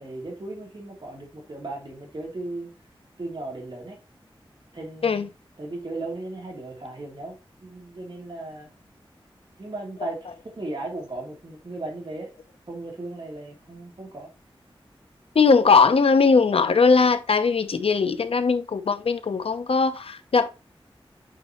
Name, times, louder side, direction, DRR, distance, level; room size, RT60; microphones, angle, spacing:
voice 1, 0.0-2.7 3.2-4.0 4.7-5.3 5.6-8.7 9.6-12.3 12.7-14.3, right 2 dB, 55° right, 3.0 m, -36 dB
voice 2, 15.3-20.5, left 4 dB, 90° left, 0.7 m, -19 dB
8.5 x 4.1 x 3.0 m
wide cardioid pair, 80°, 10 cm